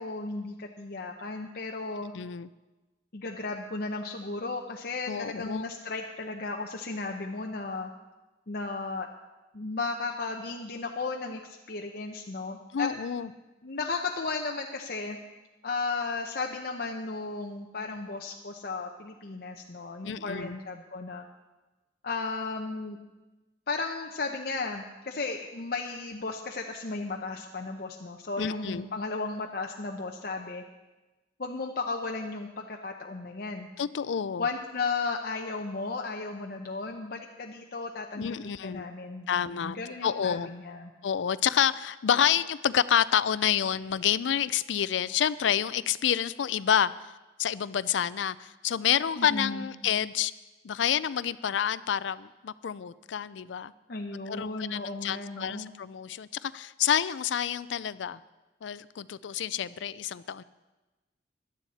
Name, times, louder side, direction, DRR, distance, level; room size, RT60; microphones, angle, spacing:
voice 1, 0.0-2.1 3.1-7.9 8.5-9.1 9.5-12.9 13.6-15.2 15.6-21.2 22.0-23.0 23.7-30.6 31.4-33.7 34.4-38.3 38.6-39.3 39.5-40.9 49.2-49.7 53.9-55.7, left 3 dB, 55° left, 1 dB, 0.8 m, -34 dB
voice 2, 2.1-2.5 5.1-5.6 12.7-13.3 20.0-20.6 28.4-28.8 33.8-34.5 38.2-38.8 39.3-39.8 40.0-40.5 41.0-47.1 47.4-50.3 50.6-53.7 54.3-58.2 58.6-60.4, left 9 dB, 90° left, 17 dB, 0.4 m, -28 dB
17.0 x 11.5 x 4.2 m, 1.1 s
head